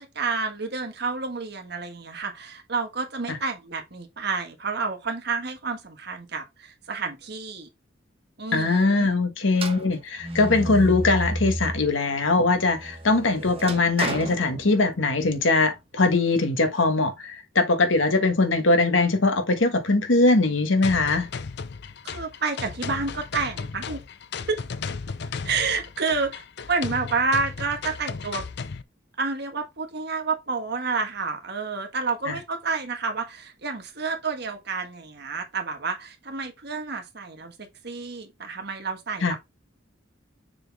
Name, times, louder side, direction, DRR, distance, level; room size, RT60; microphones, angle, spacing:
voice 1, 0.0-7.7 8.4-9.1 22.0-24.0 24.5-24.6 25.4-26.4 26.7-28.4 29.2-37.5 37.8-39.4, right 4 dB, 55° right, 1.5 m, -29 dB
voice 2, 8.5-21.3 32.3-32.4 39.2-39.4, left 3 dB, 80° left, 1.4 m, -21 dB
sound 1, 9.5-11.9 12.4-15.2, right 1 dB, 30° right, 1.0 m, -32 dB
sound 2, 20.8-28.8, left 5 dB, 60° left, 0.5 m, -35 dB
6.7 x 4.2 x 3.5 m
head